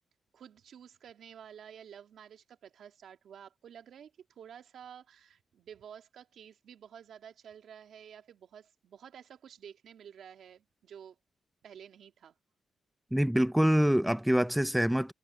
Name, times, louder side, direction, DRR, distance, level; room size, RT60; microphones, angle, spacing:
voice 1, 0.3-11.2 11.6-12.3, right 8 dB, 75° right, 2.3 m, -51 dB
voice 2, 13.1-15.1, equal, 5° right, 0.5 m, -25 dB
cardioid pair, 100°, 0 cm